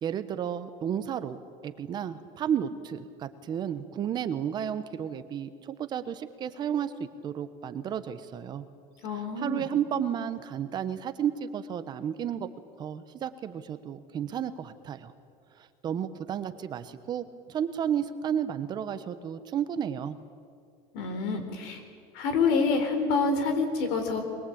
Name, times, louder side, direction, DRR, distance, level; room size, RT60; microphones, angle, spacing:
voice 1, 0.0-1.4 1.6-6.9 7.2-8.6 9.4-12.5 12.8-15.1 15.6-20.2, right 9 dB, 35° right, 11 dB, 1.1 m, -32 dB
voice 2, 9.0-9.6 20.9-21.8 22.1-24.2, left 4 dB, 85° left, 6 dB, 4.2 m, -27 dB
22.5 x 21.0 x 8.7 m, 2.3 s
cardioid pair, 155°, 13 cm